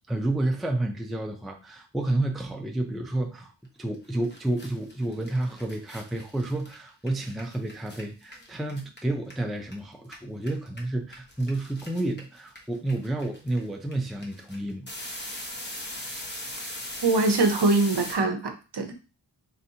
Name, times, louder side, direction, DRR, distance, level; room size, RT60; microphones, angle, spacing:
voice 1, 0.1-3.5 3.8-14.9, right 2 dB, ahead, 3 dB, 0.4 m, -30 dB
sound 1, 3.9-4.0 4.2-9.7 10.0-18.1, left 1 dB, 25° left, 1.0 m, -39 dB
voice 2, 17.0-18.9, right 3 dB, 60° right, 6 dB, 0.8 m, -23 dB
4.1 x 3.3 x 2.8 m, 0.33 s
wide cardioid pair, 85°, 46 cm